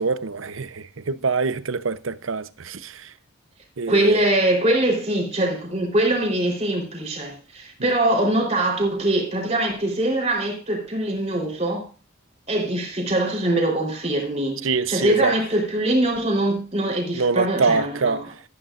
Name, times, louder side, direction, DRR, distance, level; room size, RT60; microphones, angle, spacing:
voice 1, 0.0-3.1 3.8-4.2 14.6-15.3 17.1-18.2, right 4 dB, 75° right, 0.7 m, -24 dB
voice 2, 3.9-11.9 12.5-14.6 14.9-18.3, right 1 dB, 30° right, 3.8 m, -23 dB
13.5 x 12.0 x 2.5 m
head